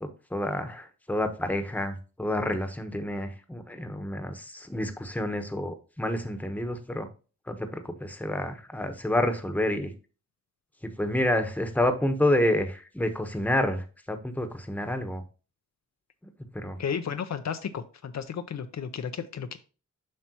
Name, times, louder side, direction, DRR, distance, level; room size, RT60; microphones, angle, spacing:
voice 1, 0.0-7.1 7.5-9.9 11.0-15.2 16.5-16.8, left 1 dB, 5° left, 7 dB, 1.1 m, -29 dB
voice 2, 16.8-19.6, left 7 dB, 60° left, 9 dB, 0.7 m, -33 dB
7.7 x 5.8 x 2.9 m, 0.34 s
wide cardioid pair, 105°, 31 cm